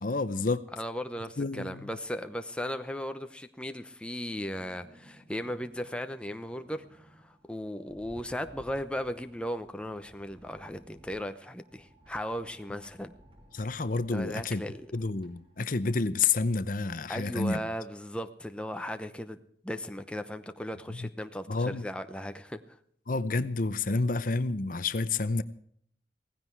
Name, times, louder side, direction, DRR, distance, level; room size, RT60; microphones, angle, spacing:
voice 1, 0.0-0.6 1.4-1.9 13.5-14.6 14.9-17.6 21.5-21.8 23.1-25.4, left 3 dB, 50° left, 13 dB, 0.7 m, -29 dB
voice 2, 0.8-13.1 14.1-14.9 17.1-19.4 19.6-22.8, equal, 5° left, 7 dB, 0.8 m, -37 dB
sound 1, 4.6-15.8, right 1 dB, 30° right, 2.8 m, -58 dB
17.0 x 15.5 x 4.6 m, 0.63 s
head